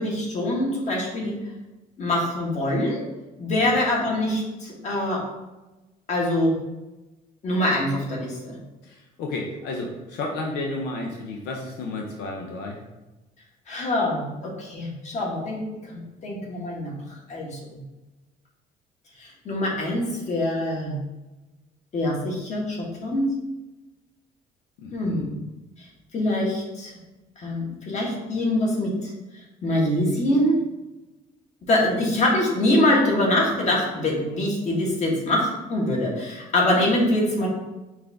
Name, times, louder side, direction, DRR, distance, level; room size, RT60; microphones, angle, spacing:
voice 1, 0.0-1.4 2.0-3.0 3.4-5.2 6.1-6.6 7.4-8.6 13.7-16.9 17.3-17.6 19.2-20.9 21.9-23.3 24.9-25.3 25.8-25.9 26.1-26.9 27.4-29.1 29.6-30.6 31.7-37.5, left 1 dB, 45° left, -3 dB, 1.5 m, -24 dB
voice 2, 8.8-12.8 24.8-25.3, left 2 dB, 90° left, 0 dB, 0.7 m, -32 dB
5.6 x 2.6 x 3.4 m, 1.1 s
cardioid pair, 110°, 17 cm